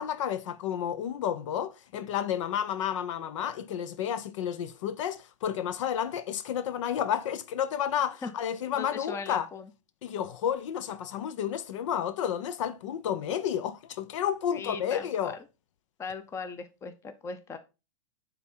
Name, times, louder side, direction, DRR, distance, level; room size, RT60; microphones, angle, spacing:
voice 1, 0.0-9.5 10.0-15.4, left 9 dB, 60° left, 0.7 m, -31 dB
voice 2, 8.7-9.7 14.5-15.3 16.0-17.6, left 5 dB, 15° left, 0.8 m, -38 dB
9.1 x 3.8 x 4.3 m
hypercardioid pair, 135°, 18 cm